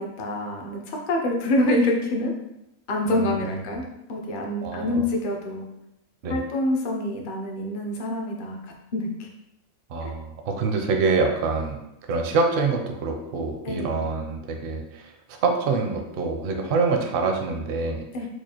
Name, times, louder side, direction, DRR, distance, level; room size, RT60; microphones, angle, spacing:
voice 1, 0.0-2.3 2.9-3.8 4.1-5.7 6.3-8.6 8.9-9.3 10.0-10.1 13.6-14.0 18.1-18.3, left 1 dB, 50° left, 1 dB, 0.6 m, -26 dB
voice 2, 3.1-3.7 4.6-5.0 6.2-6.4 9.9-11.8 12.1-15.1 15.4-18.1, right 4 dB, 60° right, 3 dB, 0.6 m, -25 dB
4.6 x 2.3 x 2.8 m, 0.86 s
omnidirectional pair, 1.4 m